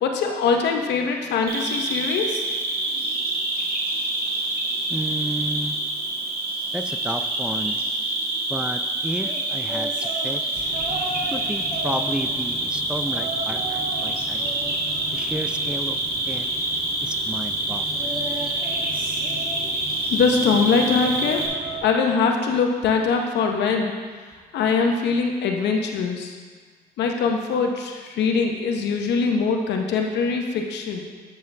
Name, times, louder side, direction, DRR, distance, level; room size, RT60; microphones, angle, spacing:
voice 1, 0.0-2.4 20.1-21.5 21.8-23.9 24.5-26.4 27.0-31.0, left 5 dB, 85° left, 3 dB, 0.8 m, -22 dB
Cricket, 1.5-21.5, right 2 dB, 60° right, 1.5 m, -26 dB
voice 2, 4.9-5.8 6.7-7.8 8.5-10.5 11.3-14.8 15.1-16.0 16.3-16.5 17.0-18.2, right 1 dB, 5° right, 6 dB, 0.4 m, -32 dB
sound 1, 9.2-12.5 13.1-14.1 14.3-15.9 17.9-20.1 21.0-22.5 22.8-23.2 24.3-24.4, right 2 dB, 30° right, 2.0 m, -36 dB
sound 2, 10.6-21.8, left 4 dB, 30° left, 1.2 m, -41 dB
7.6 x 7.1 x 3.3 m, 1.5 s
cardioid pair, 70°, 18 cm